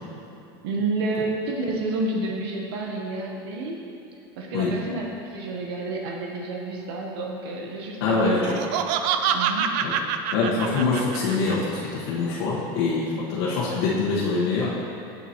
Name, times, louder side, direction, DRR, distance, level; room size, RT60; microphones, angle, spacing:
voice 1, 0.6-3.8 4.4-8.5 9.3-9.7, right 2 dB, 90° right, 0 dB, 1.0 m, -30 dB
voice 2, 8.0-8.6 9.8-9.9 10.3-14.8, left 3 dB, 75° left, -8 dB, 1.3 m, -24 dB
Laughter, 8.3-11.5, right 8 dB, 60° right, 0.4 m, -26 dB
8.1 x 7.2 x 3.0 m, 2.8 s
cardioid pair, 155°, 12 cm